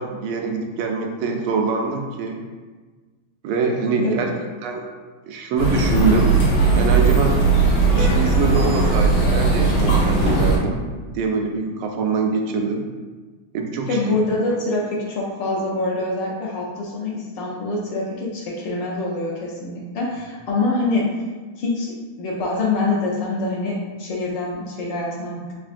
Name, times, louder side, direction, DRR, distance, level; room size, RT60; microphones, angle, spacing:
voice 1, 0.0-2.4 3.4-4.3 4.6-4.9 5.2-6.3 6.7-7.4 7.9-10.8 11.1-12.9 13.5-14.2, right 4 dB, 90° right, 3 dB, 1.5 m, -24 dB
sound 1, 5.6-10.6, right 3 dB, 90° left, 1.9 m, -18 dB
voice 2, 13.9-21.1 21.6-25.6, left 2 dB, 70° left, -3 dB, 1.2 m, -25 dB
4.3 x 3.4 x 2.5 m, 1.3 s
omnidirectional pair, 2.3 m